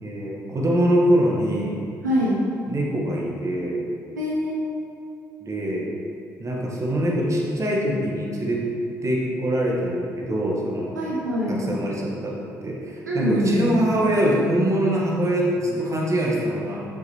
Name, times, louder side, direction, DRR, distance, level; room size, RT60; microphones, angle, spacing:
voice 1, 0.0-1.8 2.7-3.8 5.4-5.9 6.4-8.7 9.0-10.9 11.5-16.9, right 1 dB, 35° right, -3 dB, 2.0 m, -23 dB
voice 2, 2.0-2.3 4.1-4.8 10.9-11.6 13.1-13.7, equal, 85° right, -6 dB, 1.1 m, -24 dB
8.4 x 6.7 x 4.5 m, 2.5 s
figure-of-eight pair, 45°, 9 cm